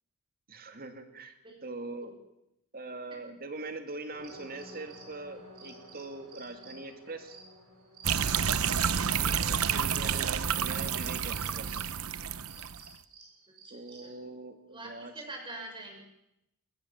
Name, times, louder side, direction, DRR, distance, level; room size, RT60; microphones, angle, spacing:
voice 1, 0.5-2.1 2.7-7.4 9.4-11.9 13.7-15.1, right 2 dB, 45° right, 7 dB, 2.7 m, -42 dB
sound 1, 4.1-11.9 12.3-14.2, right 2 dB, 85° right, 7.5 m, -52 dB
sound 2, 8.0-12.9, right 7 dB, 70° right, 0.9 m, -29 dB
voice 2, 9.1-9.4 14.0-14.1 14.7-16.0, right 2 dB, 20° right, 2 dB, 6.2 m, -44 dB
22.5 x 20.5 x 7.4 m, 0.83 s
head